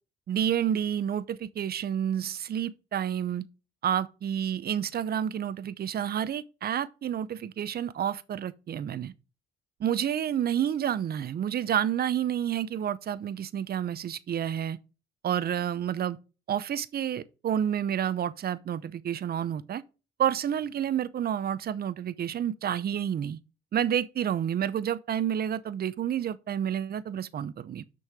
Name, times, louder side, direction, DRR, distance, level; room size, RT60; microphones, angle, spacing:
voice 1, 0.3-3.4 3.8-9.1 9.8-14.8 15.2-16.2 16.5-19.8 20.2-23.4 23.7-27.8, right 9 dB, 50° right, 0.7 m, -29 dB
6.5 x 5.5 x 4.8 m
cardioid pair, 90°, 20 cm